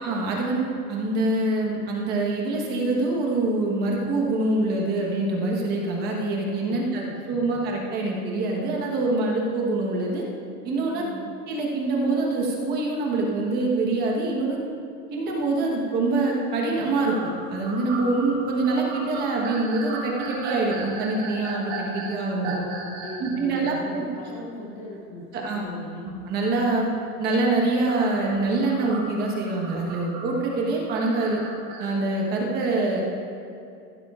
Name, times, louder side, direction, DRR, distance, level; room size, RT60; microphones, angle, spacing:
voice 1, 0.0-7.0 7.3-10.2 10.6-11.1 11.5-14.6 15.1-22.6 23.2-24.1 25.3-25.6 26.0-26.9 27.2-31.4 31.8-33.0, right 2 dB, 20° right, -1 dB, 1.2 m, -25 dB
voice 2, 6.6-7.2 10.9-11.3 22.3-26.0, left 2 dB, 20° left, -3 dB, 0.6 m, -39 dB
sound 1, 17.1-23.4 23.9-24.0 25.4-25.5 27.9-31.9, right 3 dB, 45° right, 2.5 m, -36 dB
15.0 x 11.5 x 2.5 m, 2.6 s
supercardioid pair, 175°, 45 cm